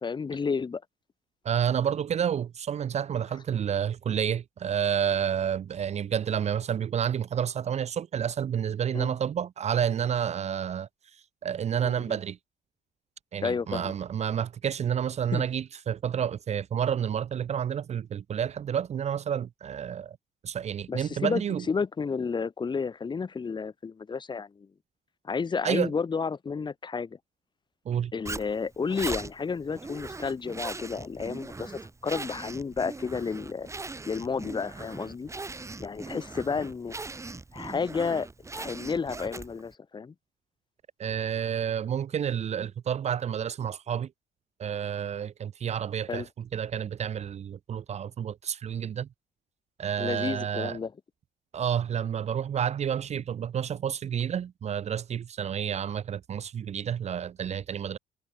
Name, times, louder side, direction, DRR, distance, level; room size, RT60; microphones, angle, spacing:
voice 1, 0.0-0.8 8.9-9.1 11.8-12.2 13.4-13.9 15.3-15.4 20.9-21.4 21.7-24.7 25.2-27.2 28.1-33.7 34.1-35.3 35.8-36.9 37.5-38.3 38.5-40.1 46.1-46.3 50.0-50.9, left 5 dB, 25° left, 1.4 m, -31 dB
voice 2, 1.4-10.9 11.4-12.4 13.3-20.2 20.4-21.6 25.6-25.9 27.9-28.1 41.0-44.1 44.6-46.2 46.5-49.1 49.8-50.8 51.5-58.0, right 8 dB, 40° right, 0.8 m, -30 dB
Zipper (clothing), 28.3-39.7, right 3 dB, 15° right, 3.8 m, -40 dB
cardioid pair, 110°, 17 cm